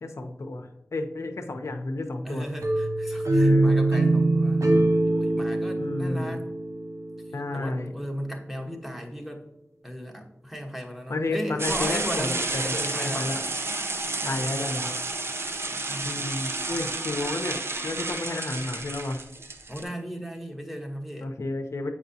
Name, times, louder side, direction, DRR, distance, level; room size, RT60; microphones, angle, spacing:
voice 1, 0.0-2.5 3.4-3.8 5.8-6.4 7.3-7.9 11.1-13.4 14.2-15.0 16.0-17.6 17.8-19.2 21.2-21.9, left 2 dB, 75° left, 4 dB, 0.6 m, -31 dB
voice 2, 2.2-4.7 5.0-6.4 7.5-9.4 9.8-13.4 14.2-14.7 15.9-16.1 19.7-21.3, equal, 5° right, 1 dB, 1.1 m, -36 dB
sound 1, 2.6-7.5, right 2 dB, 85° right, 0.9 m, -23 dB
sound 2, 11.6-19.8, right 2 dB, 55° right, 0.6 m, -31 dB
7.9 x 4.9 x 2.7 m, 0.85 s
wide cardioid pair, 65°, 5 cm